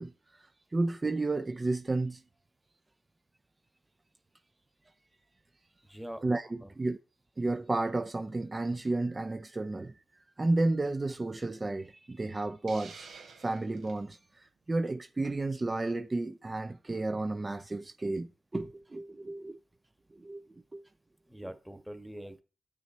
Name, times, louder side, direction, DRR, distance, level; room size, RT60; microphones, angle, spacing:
voice 1, 0.0-2.2 6.2-6.5 6.8-7.0 7.4-10.0 10.4-13.1 13.4-19.6 20.1-20.4 20.7-20.8, right 2 dB, 35° right, 0.6 m, -32 dB
voice 2, 5.9-6.7 21.3-22.4, equal, 5° right, 1.3 m, -44 dB
Hiss, 12.7-14.0, right 5 dB, 80° right, 1.3 m, -50 dB
8.3 x 6.3 x 4.3 m
supercardioid pair, 45°, 0 cm